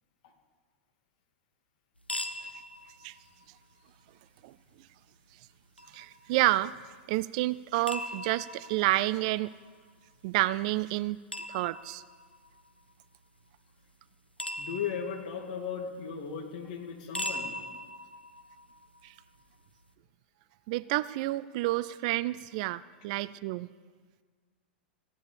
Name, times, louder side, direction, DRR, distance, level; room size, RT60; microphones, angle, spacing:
sound 1, 2.0-19.9, left 1 dB, 85° left, 1.0 m, -43 dB
voice 1, 5.9-6.7 7.1-9.5 10.2-11.2 11.5-12.0 19.0-19.1 20.7-23.7, right 18 dB, 45° right, 18 dB, 0.3 m, -29 dB
voice 2, 14.6-17.5, left 7 dB, 50° left, 3 dB, 2.4 m, -36 dB
16.0 x 10.5 x 7.0 m, 1.5 s
figure-of-eight pair, 95°, 5 cm